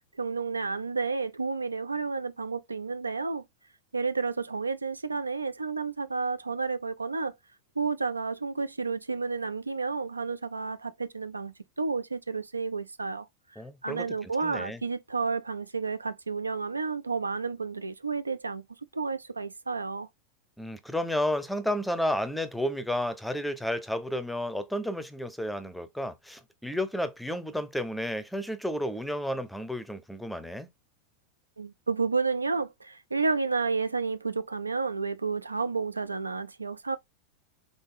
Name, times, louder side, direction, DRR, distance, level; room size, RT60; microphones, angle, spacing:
voice 1, 0.2-3.4 3.9-7.3 7.8-13.3 13.8-18.6 18.9-20.1 31.6-37.0, right 4 dB, 80° right, 0.4 m, -31 dB
voice 2, 13.6-14.8 20.6-30.7, left 1 dB, ahead, 0.6 m, -32 dB
3.8 x 3.6 x 3.8 m
figure-of-eight pair, 90°, 0 cm